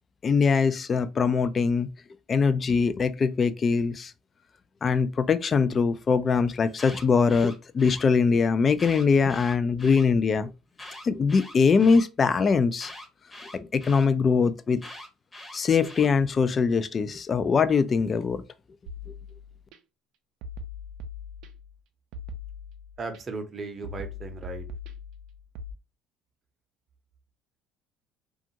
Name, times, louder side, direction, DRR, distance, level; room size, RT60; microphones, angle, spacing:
voice 1, 0.2-1.9 2.3-4.1 4.8-10.5 11.0-12.9 13.5-14.8 15.5-18.4, left 5 dB, 40° left, 0.3 m, -22 dB
Alarm, 6.6-8.1 8.7-10.1 10.7-12.1 12.8-14.1 14.8-16.1, left 1 dB, 20° left, 0.8 m, -44 dB
sound 1, 18.9-19.8 20.4-21.8 22.1-23.2 23.8-25.7, left 3 dB, 75° right, 0.4 m, -40 dB
voice 2, 23.0-24.7, right 3 dB, 35° right, 0.7 m, -36 dB
2.5 x 2.4 x 2.8 m
supercardioid pair, 85°, 0 cm